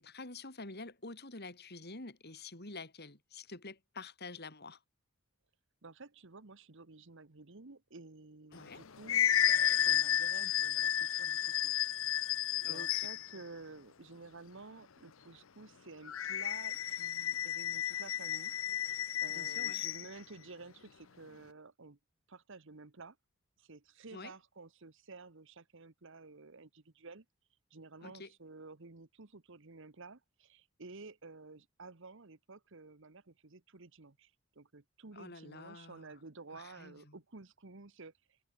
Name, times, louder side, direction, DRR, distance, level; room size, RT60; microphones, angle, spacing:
voice 1, 0.0-4.8 8.5-8.8 12.6-13.0 19.3-19.8 24.1-24.3 28.0-28.3 35.1-36.1 36.5-37.2, left 3 dB, 50° left, 4.1 m, -48 dB
voice 2, 5.8-11.9 12.6-18.5 18.9-22.0 22.3-23.2 23.6-27.2 27.7-38.4, right 3 dB, 65° right, 1.3 m, -52 dB
sound 1, 8.6-13.4 16.1-20.1, left 11 dB, 70° left, 0.7 m, -32 dB
head